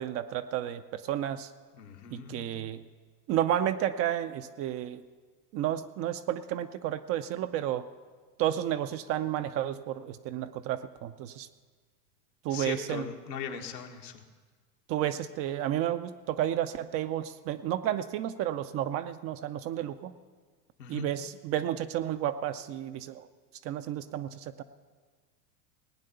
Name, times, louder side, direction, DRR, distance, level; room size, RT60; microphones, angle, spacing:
voice 1, 0.0-1.5 2.1-2.8 3.3-5.0 5.5-7.9 8.4-11.5 12.4-13.1 14.9-20.1 20.9-23.3 23.6-24.6, right 11 dB, 30° right, 10 dB, 0.4 m, -31 dB
voice 2, 1.8-2.5 12.5-14.2 20.8-21.2, left 7 dB, 80° left, 2 dB, 1.7 m, -39 dB
18.5 x 9.1 x 6.7 m, 1.5 s
hypercardioid pair, 100°, 50 cm